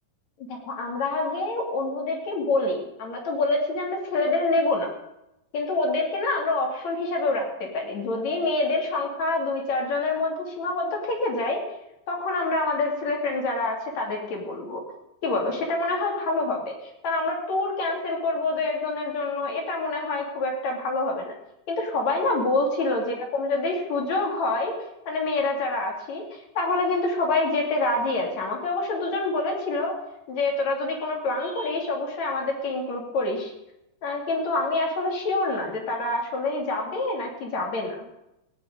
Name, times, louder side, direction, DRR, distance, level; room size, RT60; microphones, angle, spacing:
voice 1, 0.5-4.9 5.5-11.6 12.1-14.8 15.2-16.7 17.0-21.3 21.7-24.7 25.1-29.9 30.3-33.5 34.0-38.0, left 2 dB, 55° left, 0 dB, 3.7 m, -26 dB
16.5 x 6.0 x 9.0 m, 0.89 s
omnidirectional pair, 4.0 m